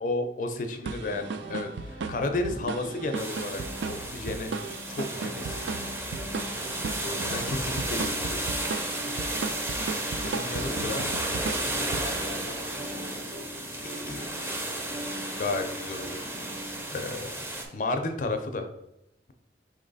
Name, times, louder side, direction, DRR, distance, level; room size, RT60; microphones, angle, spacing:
voice 1, 0.0-3.6 3.9-4.5 4.9-5.6 7.0-8.5 10.2-11.0 14.1-14.3 15.4-16.3 16.9-18.7, left 2 dB, 50° left, 6 dB, 0.5 m, -32 dB
sound 1, 0.9-12.8, right 4 dB, 90° right, 0.3 m, -36 dB
sound 2, 1.1-16.8, right 1 dB, 50° right, 1.5 m, -42 dB
voice 2, 2.8-3.3 9.0-9.2 10.4-11.3 11.8-14.4, left 1 dB, 70° right, -2 dB, 1.7 m, -43 dB
sound 3, 3.2-17.7, right 1 dB, 15° right, 0.5 m, -33 dB
4.1 x 3.1 x 4.0 m, 0.84 s
head